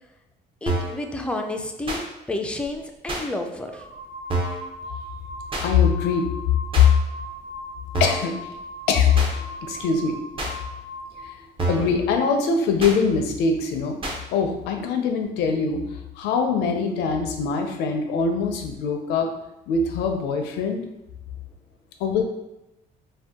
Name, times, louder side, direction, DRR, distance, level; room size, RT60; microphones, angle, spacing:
voice 1, 0.6-3.8, left 2 dB, 5° left, 4 dB, 0.3 m, -30 dB
sound 1, 0.7-1.0 1.9-2.0 3.1-3.2 4.3-4.6 5.5-5.7 6.7-6.9 7.9-8.3 9.1-9.3 10.4-10.5 11.6-11.9 12.8-13.0 14.0-14.2, right 2 dB, 30° right, 0.6 m, -27 dB
sound 2, 2.7-2.8 3.6-11.3, left 1 dB, 75° right, 1.2 m, -38 dB
voice 2, 5.6-6.3 6.8-6.9 8.0-8.4 8.9-10.2 11.2-11.4 11.7-14.0 14.3-15.8 16.2-19.3 19.7-20.8 22.0-22.2, left 5 dB, 85° left, 4 dB, 0.5 m, -22 dB
2.7 x 2.2 x 3.5 m, 0.91 s
cardioid pair, 110°, 17 cm